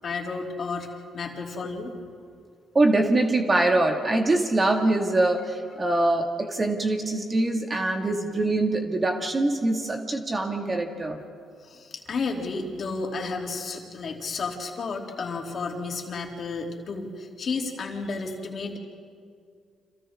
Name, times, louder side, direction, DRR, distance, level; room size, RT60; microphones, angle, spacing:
voice 1, 0.0-1.9 11.7-18.8, left 4 dB, 50° left, 1 dB, 3.0 m, -32 dB
voice 2, 2.7-11.2, right 2 dB, 30° right, 2 dB, 2.1 m, -23 dB
30.0 x 26.5 x 3.7 m, 2.2 s
cardioid pair, 90°, 0 cm